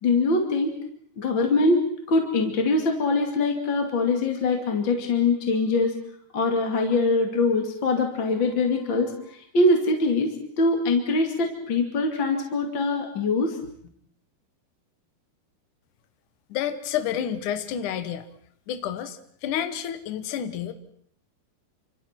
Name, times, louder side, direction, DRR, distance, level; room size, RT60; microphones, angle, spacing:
voice 1, 0.0-0.7 1.2-5.9 6.3-13.6, left 3 dB, 35° left, 2 dB, 2.5 m, -23 dB
voice 2, 16.5-18.3 18.7-20.7, left 9 dB, 60° left, 9 dB, 2.3 m, -29 dB
29.0 x 26.5 x 4.5 m, 0.63 s
omnidirectional pair, 5.1 m